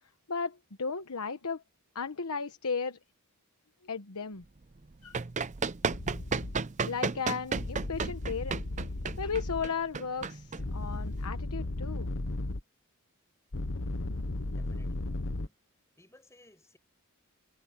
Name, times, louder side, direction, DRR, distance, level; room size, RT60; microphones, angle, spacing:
voice 1, 0.3-1.6 1.9-3.0 3.8-4.4 5.0-5.2 6.9-8.6 9.2-12.1, left 5 dB, 90° left, 1.1 m, -35 dB
Run, 4.8-11.2, right 4 dB, 35° right, 0.6 m, -34 dB
sound 1, 5.9-6.6 7.6-9.7 10.6-12.6 13.5-15.5, left 2 dB, 60° left, 1.2 m, -35 dB
voice 2, 14.5-15.6 16.0-16.8, left 1 dB, 15° left, 7.0 m, -61 dB
head